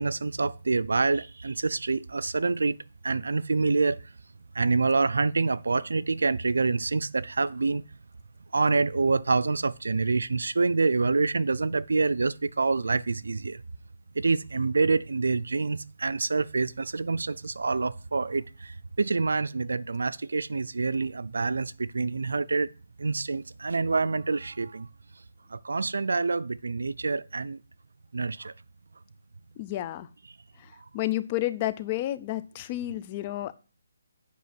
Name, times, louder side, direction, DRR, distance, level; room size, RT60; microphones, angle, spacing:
voice 1, 0.0-2.8 3.0-4.0 4.6-7.8 8.5-13.6 14.2-18.7 19.0-22.7 23.0-24.9 25.5-27.6 28.1-28.5, right 3 dB, 80° right, 0.5 m, -26 dB
voice 2, 29.6-30.1 30.6-33.5, left 15 dB, 25° left, 0.5 m, -31 dB
8.4 x 5.2 x 7.7 m
hypercardioid pair, 165°, 0 cm